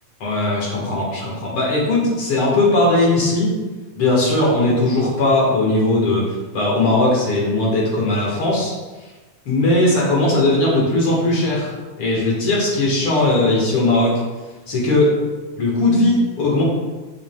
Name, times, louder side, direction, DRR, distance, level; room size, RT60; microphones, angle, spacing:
voice 1, 0.2-3.5 4.0-8.7 9.5-11.7 12.0-14.2 14.7-15.2 15.6-16.6, left 2 dB, 55° left, -4 dB, 2.0 m, -18 dB
7.1 x 6.3 x 2.2 m, 1.2 s
omnidirectional pair, 3.5 m